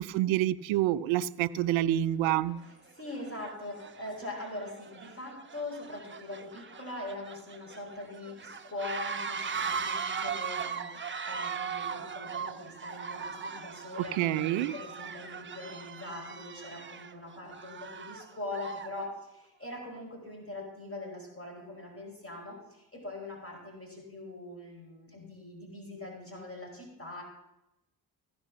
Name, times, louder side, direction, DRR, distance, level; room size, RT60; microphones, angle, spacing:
voice 1, 0.0-2.6 14.0-14.7, right 13 dB, 70° right, 17 dB, 0.5 m, -27 dB
sound 1, 1.7-1.8 2.5-2.7 3.1-19.0, right 6 dB, 25° right, 0.8 m, -39 dB
voice 2, 2.7-27.2, left 2 dB, 25° left, -1 dB, 4.7 m, -42 dB
15.0 x 5.3 x 5.8 m, 0.93 s
hypercardioid pair, 40°, 49 cm